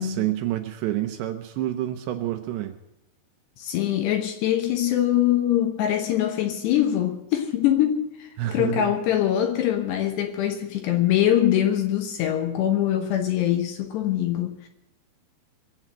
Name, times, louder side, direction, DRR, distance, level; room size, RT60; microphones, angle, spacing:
voice 1, 0.0-2.7 8.4-8.9, right 13 dB, 75° right, 6 dB, 2.8 m, -28 dB
voice 2, 3.6-14.7, left 11 dB, 75° left, 6 dB, 2.7 m, -23 dB
23.0 x 8.0 x 7.5 m, 0.87 s
omnidirectional pair, 5.7 m